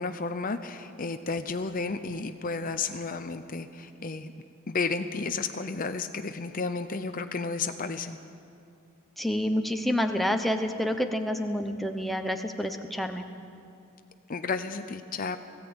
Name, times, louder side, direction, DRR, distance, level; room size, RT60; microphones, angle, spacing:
voice 1, 0.0-4.3 4.7-8.2 14.3-15.4, left 4 dB, 40° left, 9 dB, 0.6 m, -32 dB
voice 2, 9.2-13.2, equal, ahead, 5 dB, 0.9 m, -28 dB
18.5 x 16.0 x 8.8 m, 2.5 s
head